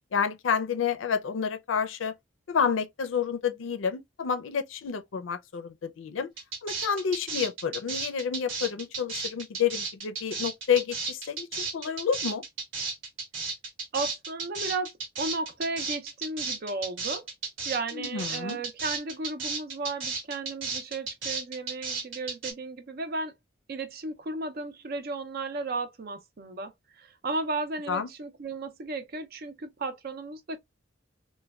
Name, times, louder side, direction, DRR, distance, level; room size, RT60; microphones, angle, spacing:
voice 1, 0.1-2.1 2.5-6.3 6.6-12.4 17.9-18.6 27.9-28.1, left 7 dB, 85° left, 0.4 m, -29 dB
sound 1, 6.4-22.5, right 4 dB, 80° right, 1.1 m, -34 dB
voice 2, 13.9-17.3 17.6-23.3 23.7-26.7 27.0-30.6, right 3 dB, 55° right, 0.5 m, -34 dB
3.1 x 2.1 x 2.2 m
head